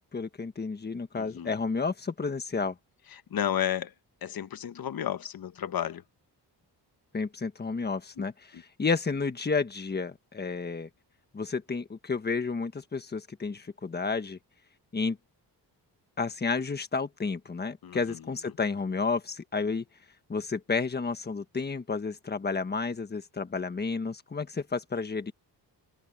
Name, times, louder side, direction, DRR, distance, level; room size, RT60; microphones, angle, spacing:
voice 1, 0.1-2.7 7.1-10.9 11.3-14.4 14.9-15.2 16.2-19.8 20.3-25.3, left 4 dB, 25° left, 1.4 m, -31 dB
voice 2, 1.1-1.6 3.1-3.9 4.2-6.0 17.8-18.2, left 10 dB, 55° left, 1.2 m, -32 dB
open air
wide cardioid pair, 175°, 42 cm